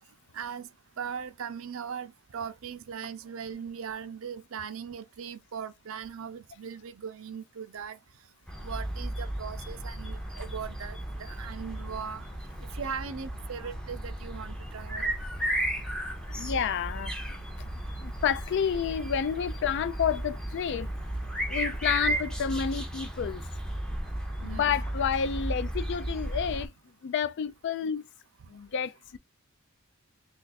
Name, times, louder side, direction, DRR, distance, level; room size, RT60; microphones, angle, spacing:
voice 1, 0.3-0.7 1.0-8.0 8.6-12.3 12.7-15.1 24.4-24.8, right 7 dB, 70° right, 0.5 m, -39 dB
sound 1, 8.5-26.7, right 1 dB, 5° left, 0.6 m, -34 dB
voice 2, 16.4-17.4 18.0-20.9 21.5-23.4 24.4-26.7 27.0-28.1 28.5-29.2, left 7 dB, 55° left, 0.3 m, -30 dB
3.1 x 2.4 x 4.0 m
head